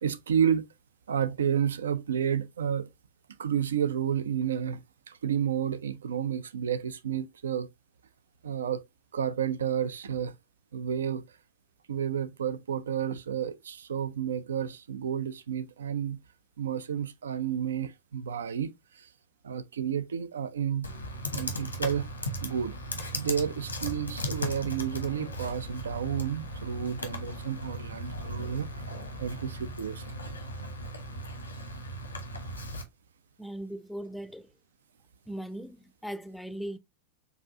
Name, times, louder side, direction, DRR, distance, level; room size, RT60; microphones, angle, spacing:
voice 1, 0.0-0.7 1.1-2.9 3.4-7.7 8.4-8.8 9.1-10.3 10.7-11.2 11.9-16.2 16.6-19.1 19.4-20.9 21.3-22.1 22.4-22.8 23.1-28.7 29.2-30.2, right 8 dB, 65° right, 0.4 m, -31 dB
Computer keyboard, 20.8-32.8, equal, 80° left, 1.2 m, -37 dB
voice 2, 33.4-34.5 35.3-35.8 36.0-36.8, right 1 dB, ahead, 0.5 m, -38 dB
7.0 x 2.6 x 2.6 m
figure-of-eight pair, 90°, 0 cm